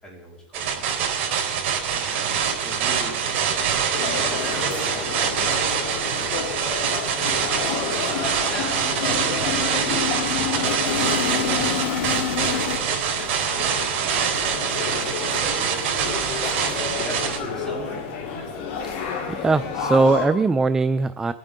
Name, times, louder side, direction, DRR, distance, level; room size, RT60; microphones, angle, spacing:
voice 1, 0.0-5.9 6.1-8.2 8.5-11.5 11.9-16.5 17.0-18.0, equal, 10° left, -4 dB, 4.5 m, -40 dB
sound 1, 0.5-17.4, right 7 dB, 55° right, 4.1 m, -25 dB
sound 2, 3.9-20.3, left 5 dB, 50° left, 3.2 m, -31 dB
sound 3, 5.5-5.6 5.9-6.0 6.4-6.6 6.8-12.8, left 9 dB, 85° left, 0.9 m, -29 dB
voice 2, 19.3-21.3, right 3 dB, 10° right, 12 dB, 0.3 m, -20 dB
24.0 x 9.0 x 3.7 m, 1.1 s
supercardioid pair, 140°, 6 cm